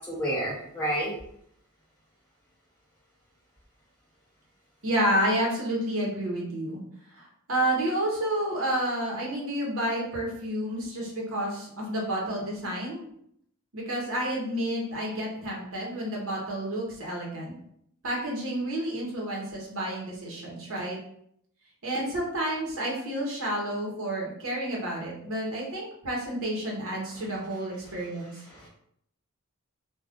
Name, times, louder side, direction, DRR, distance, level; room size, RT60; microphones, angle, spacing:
voice 1, 0.1-1.1 28.6-28.7, equal, 10° left, -6 dB, 0.5 m, -29 dB
voice 2, 4.8-6.8 7.1-13.1 13.7-17.5 18.0-21.0 21.8-28.3, right 1 dB, 65° right, -2 dB, 0.9 m, -30 dB
2.4 x 2.3 x 3.5 m, 0.71 s
head